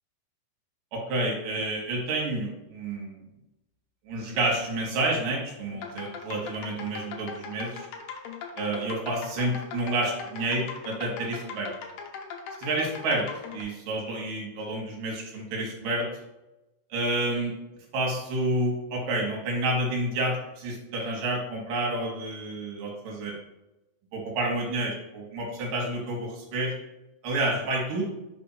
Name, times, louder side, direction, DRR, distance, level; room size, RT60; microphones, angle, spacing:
voice 1, 0.9-3.2 4.1-7.9 8.6-11.7 12.6-13.3 13.5-16.1 16.9-17.5 17.9-23.3 24.1-26.7 27.2-28.1, right 2 dB, 65° right, -1 dB, 2.7 m, -29 dB
sound 1, 5.7-13.6, left 5 dB, 75° left, 2.1 m, -40 dB
5.9 x 3.4 x 5.3 m, 0.95 s
omnidirectional pair, 4.8 m